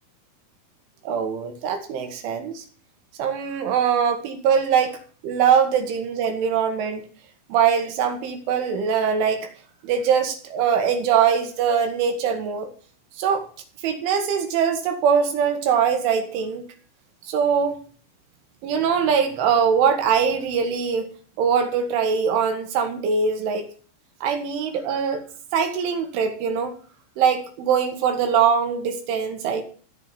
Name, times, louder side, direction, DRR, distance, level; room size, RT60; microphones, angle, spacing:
voice 1, 1.1-2.6 3.2-5.0 5.2-7.1 7.5-9.5 9.8-12.7 13.2-13.5 13.8-16.6 17.3-17.8 18.6-21.1 21.4-23.7 24.2-25.2 25.5-26.7 27.2-29.6, right 7 dB, 70° right, 6 dB, 4.5 m, -22 dB
16.0 x 7.4 x 9.6 m, 0.40 s
omnidirectional pair, 6.0 m